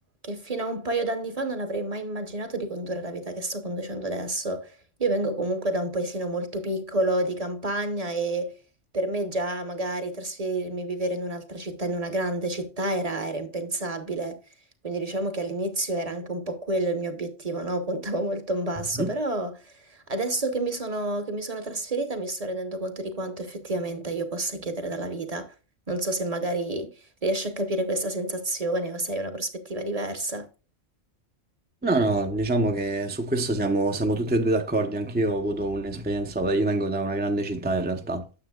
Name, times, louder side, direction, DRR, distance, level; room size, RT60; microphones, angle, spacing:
voice 1, 0.2-8.5 8.9-14.4 14.8-25.5 25.9-30.5, right 2 dB, 35° right, 0.9 m, -29 dB
voice 2, 31.8-38.3, right 2 dB, 10° right, 0.5 m, -25 dB
9.7 x 7.1 x 2.3 m
omnidirectional pair, 1.3 m